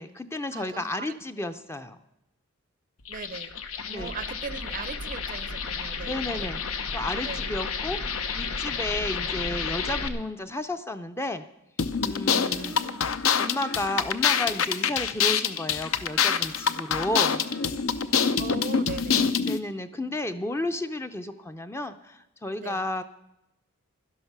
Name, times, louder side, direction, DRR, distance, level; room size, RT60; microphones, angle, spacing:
voice 1, 0.0-2.0 3.9-4.1 6.0-6.6 6.9-8.0 8.4-11.5 12.0-12.8 13.4-17.4 19.4-23.0, left 1 dB, 10° left, 9 dB, 0.5 m, -32 dB
voice 2, 0.5-1.2 1.5-1.6 3.1-3.5 3.9-6.5 7.2-7.5 12.3-13.1 18.4-19.3 22.6-22.8, right 4 dB, 40° right, 15 dB, 0.5 m, -39 dB
sound 1, 3.0-10.1, left 5 dB, 85° left, 1.0 m, -32 dB
sound 2, 11.8-19.6, left 6 dB, 70° left, 0.7 m, -25 dB
12.0 x 11.5 x 6.0 m, 0.87 s
head